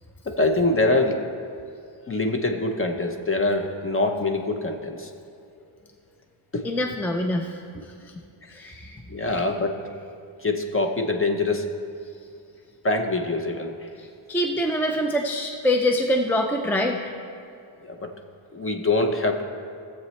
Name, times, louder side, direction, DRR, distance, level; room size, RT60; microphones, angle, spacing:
voice 1, 0.3-1.2 2.1-5.1 6.5-6.6 9.1-9.8 10.4-11.7 12.8-13.9 17.8-18.1 18.5-19.4, left 2 dB, 25° left, 4 dB, 0.7 m, -24 dB
voice 2, 6.6-7.9 8.5-9.4 14.0-17.0, left 1 dB, 5° left, 2 dB, 0.3 m, -25 dB
17.0 x 7.6 x 3.2 m, 2.6 s
wide cardioid pair, 175°, 49 cm